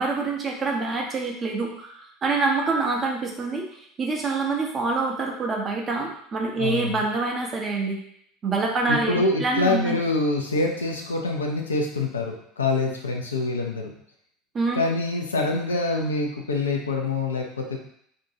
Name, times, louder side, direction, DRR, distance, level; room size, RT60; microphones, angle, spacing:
voice 1, 0.0-3.7 4.0-8.0 8.4-10.0 14.5-14.8, right 3 dB, 30° right, 0 dB, 0.6 m, -26 dB
voice 2, 6.6-7.0 8.9-13.9 14.7-17.8, left 2 dB, 80° left, 1 dB, 0.4 m, -25 dB
2.6 x 2.2 x 2.7 m, 0.69 s
figure-of-eight pair, 70°, 0 cm